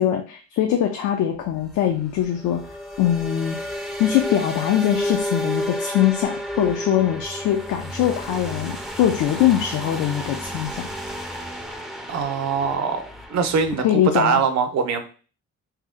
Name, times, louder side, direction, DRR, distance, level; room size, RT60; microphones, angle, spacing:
voice 1, 0.0-2.6 3.0-3.6 4.0-10.9 13.8-14.4, left 11 dB, 90° left, 3 dB, 0.5 m, -22 dB
sound 1, 1.4-13.8, equal, ahead, 0.4 m, -32 dB
voice 2, 12.1-13.0 13.3-15.0, right 6 dB, 65° right, 7 dB, 0.6 m, -22 dB
2.8 x 2.0 x 3.6 m, 0.37 s
cardioid pair, 90°, 30 cm